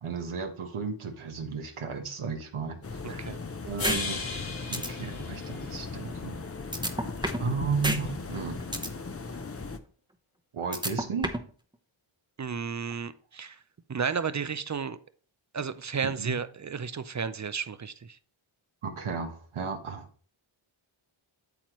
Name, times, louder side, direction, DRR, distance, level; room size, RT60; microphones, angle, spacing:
voice 1, 0.0-2.8 3.1-3.3 3.6-4.3 4.7-6.3 7.4-8.6 10.5-11.4 16.2-16.3 18.8-20.1, right 5 dB, 75° right, 1.2 m, -34 dB
sound 1, 2.8-9.8, left 4 dB, 30° left, 0.7 m, -38 dB
voice 2, 3.0-3.4 12.4-13.6 13.9-15.0 15.5-18.2, right 6 dB, 35° right, 0.5 m, -33 dB
sound 2, 3.8-6.1, left 4 dB, 75° left, 2.0 m, -36 dB
sound 3, 3.8-4.0 4.4-4.5 4.7-4.9 6.7-7.5 7.8-8.0 8.3-8.9 10.7-11.5, right 1 dB, 10° right, 0.9 m, -29 dB
8.5 x 7.7 x 3.0 m
wide cardioid pair, 75°, 49 cm